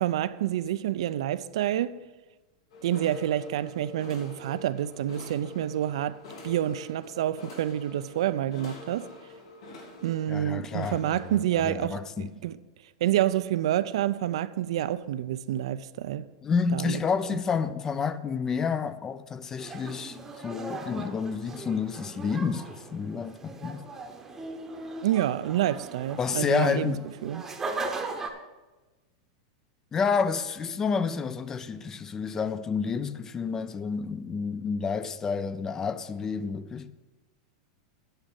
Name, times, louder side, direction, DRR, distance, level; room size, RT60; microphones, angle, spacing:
voice 1, 0.0-2.0 2.8-6.2 6.4-9.1 10.0-12.6 13.0-16.3 16.7-17.0 25.0-26.9 27.2-27.4, right 12 dB, 75° right, 0.4 m, -28 dB
sound 1, 2.7-11.4, left 2 dB, 90° left, 2.5 m, -46 dB
voice 2, 10.3-11.0 11.3-12.3 16.4-23.9 26.2-27.1 29.9-36.9, left 5 dB, 15° left, 0.3 m, -29 dB
sound 2, 19.6-28.3, right 3 dB, 15° right, 0.8 m, -39 dB
8.9 x 5.3 x 7.7 m
supercardioid pair, 155°, 3 cm